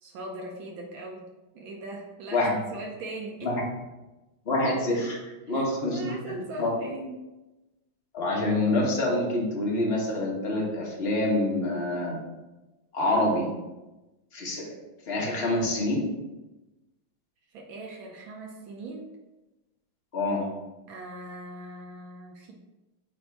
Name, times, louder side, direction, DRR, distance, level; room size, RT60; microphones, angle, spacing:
voice 1, 0.0-3.5 5.5-7.3 17.5-19.1 20.9-22.5, right 2 dB, 75° right, 0 dB, 1.5 m, -40 dB
voice 2, 4.4-5.2 5.5-6.7 8.1-12.2 12.9-13.5 14.3-14.7 15.1-16.1 20.1-20.5, left 2 dB, 35° left, -2 dB, 1.2 m, -26 dB
7.7 x 2.7 x 4.6 m, 1.1 s
omnidirectional pair, 2.2 m